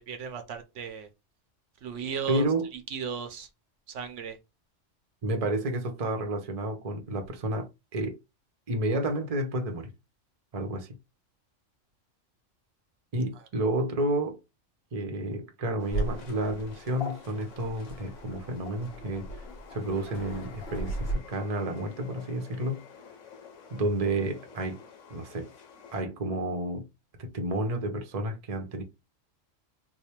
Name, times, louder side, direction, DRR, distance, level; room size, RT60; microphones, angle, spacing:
voice 1, 0.1-1.1 1.8-2.4 2.7-3.5 3.9-4.4, right 7 dB, 75° right, 1.0 m, -35 dB
voice 2, 2.3-2.7 5.2-8.1 8.7-9.9 10.5-11.0 13.1-14.4 14.9-19.3 19.7-22.8 23.7-24.8 25.1-25.5 25.9-26.9 27.2-28.8, right 1 dB, 35° right, 0.6 m, -30 dB
sound 1, 15.8-26.0, left 6 dB, 75° left, 1.1 m, -51 dB
Waves surf, 15.9-21.1, right 1 dB, 50° left, 1.2 m, -37 dB
3.3 x 2.1 x 4.2 m
omnidirectional pair, 1.3 m